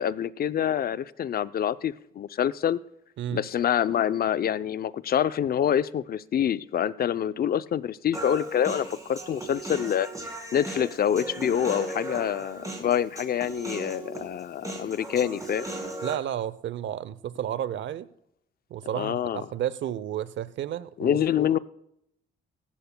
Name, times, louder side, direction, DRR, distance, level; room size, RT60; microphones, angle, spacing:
voice 1, 0.0-2.8 3.3-10.1 10.5-15.7 18.9-19.4 21.0-21.6, left 9 dB, 50° left, 15 dB, 0.5 m, -26 dB
Human voice, 8.1-16.1, right 2 dB, 15° right, 4.6 m, -37 dB
voice 2, 16.0-18.1 18.7-21.2, right 11 dB, 70° right, 17 dB, 0.7 m, -32 dB
17.0 x 14.5 x 2.2 m, 0.77 s
cardioid pair, 90°, 20 cm